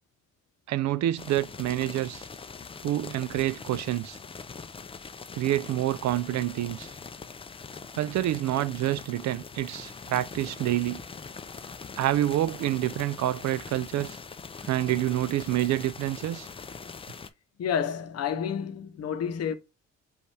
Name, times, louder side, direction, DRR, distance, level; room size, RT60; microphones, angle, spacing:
voice 1, 0.7-2.3 2.8-4.2 5.3-6.9 8.0-11.0 12.0-14.2 14.7-16.5, right 13 dB, 65° right, 0.4 m, -27 dB
sound 1, 1.2-17.3, left 5 dB, 20° left, 0.4 m, -42 dB
voice 2, 17.6-19.5, left 8 dB, 55° left, 0.7 m, -30 dB
5.2 x 2.5 x 3.2 m
cardioid pair, 90°, 30 cm